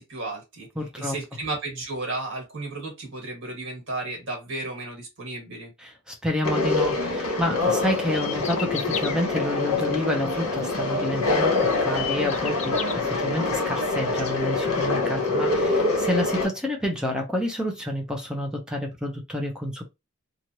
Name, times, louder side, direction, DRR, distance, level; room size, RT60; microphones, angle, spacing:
voice 1, 0.0-0.7 1.0-5.7, right 2 dB, 60° right, 1.6 m, -33 dB
voice 2, 0.8-1.2 5.8-19.8, left 1 dB, 5° right, 0.7 m, -29 dB
Conversation, 6.4-16.5, left 3 dB, 75° left, 1.5 m, -25 dB
sound 1, 7.9-9.2 10.9-11.0 11.5-12.9, left 8 dB, 30° left, 0.4 m, -33 dB
3.0 x 2.4 x 2.7 m
head